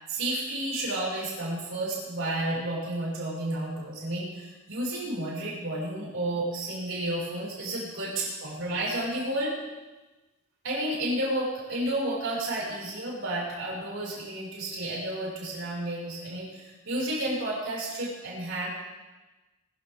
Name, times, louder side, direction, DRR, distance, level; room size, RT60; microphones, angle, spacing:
voice 1, 0.1-9.6 10.6-18.7, right 1 dB, 65° right, -4 dB, 6.2 m, -31 dB
22.5 x 14.0 x 3.8 m, 1.1 s
head